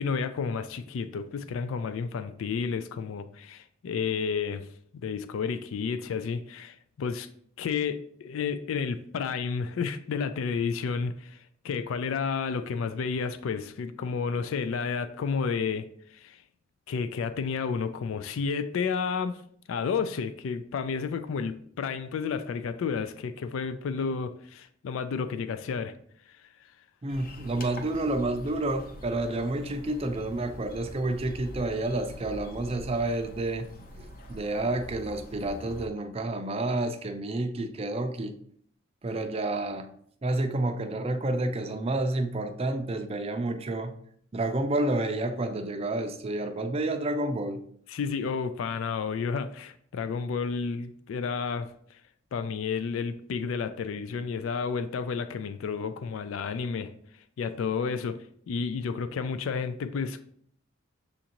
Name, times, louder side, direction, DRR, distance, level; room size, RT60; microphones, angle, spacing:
voice 1, 0.0-4.7 4.9-7.3 7.6-11.4 11.6-15.9 16.1-16.4 16.9-19.4 19.7-25.9 47.9-51.7 52.3-56.9 57.4-58.2 58.5-60.2, left 5 dB, 70° left, 0.3 m, -31 dB
voice 2, 27.0-33.7 34.0-38.4 39.0-39.9 40.2-43.9 44.3-47.6, right 2 dB, 30° right, 0.4 m, -29 dB
sound 1, 27.1-35.9, equal, 45° left, 0.7 m, -45 dB
6.9 x 2.5 x 2.9 m
head